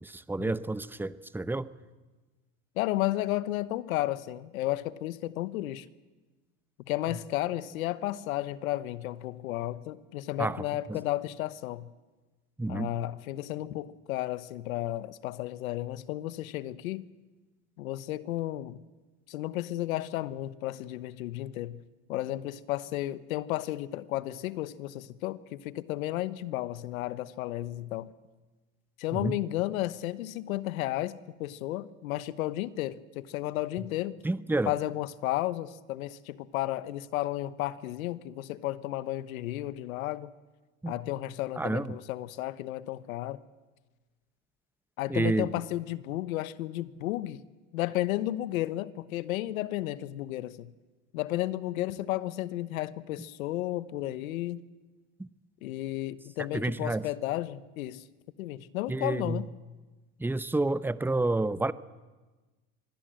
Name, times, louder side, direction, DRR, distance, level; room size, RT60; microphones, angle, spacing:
voice 1, 0.0-1.7 10.4-11.0 12.6-12.9 29.1-29.4 34.2-34.7 40.8-40.9 41.6-42.0 45.1-45.5 55.2-55.3 56.5-57.0 58.9-59.5 60.2-61.7, right 2 dB, 5° right, 15 dB, 0.8 m, -30 dB
voice 2, 2.8-5.9 6.9-11.9 12.7-17.0 17.8-18.8 19.3-21.8 22.1-28.1 29.0-34.2 34.7-40.3 40.9-43.4 45.0-47.4 47.7-50.7 51.1-54.6 55.6-58.0 58.4-59.5, left 15 dB, 85° left, 15 dB, 1.1 m, -33 dB
25.5 x 21.0 x 7.8 m, 1.3 s
supercardioid pair, 95°, 41 cm